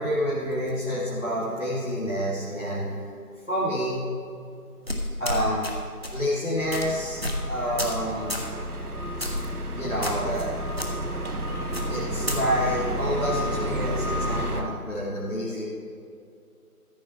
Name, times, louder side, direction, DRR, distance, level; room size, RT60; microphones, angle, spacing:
voice 1, 0.0-3.1 3.5-4.1 5.2-5.7 6.1-8.4 9.2-9.3 9.8-10.6 11.9-15.6, equal, 55° left, -8 dB, 2.1 m, -28 dB
sound 1, 4.9-5.7 6.0-6.2 6.7-6.9 7.2-7.4 7.8-8.0 8.3-8.5 9.2-9.5 10.0-10.5 10.8-10.9 11.7-12.4, left 1 dB, 40° right, 1.2 m, -30 dB
sound 2, 6.6-14.6, equal, 75° right, 1.3 m, -31 dB
13.5 x 5.9 x 5.7 m, 2.5 s
figure-of-eight pair, 180°, 46 cm